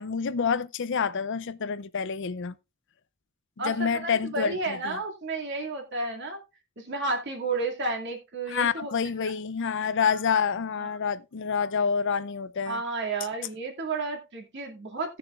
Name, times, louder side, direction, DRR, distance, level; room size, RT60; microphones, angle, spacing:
voice 1, 0.0-2.6 3.6-5.0 8.5-12.8, left 6 dB, 55° left, 0.5 m, -28 dB
voice 2, 3.6-6.4 6.8-8.9 9.2-9.3 10.8-10.9 11.6-11.7 12.7-15.2, right 3 dB, 55° right, 2.3 m, -32 dB
17.0 x 6.9 x 2.4 m
head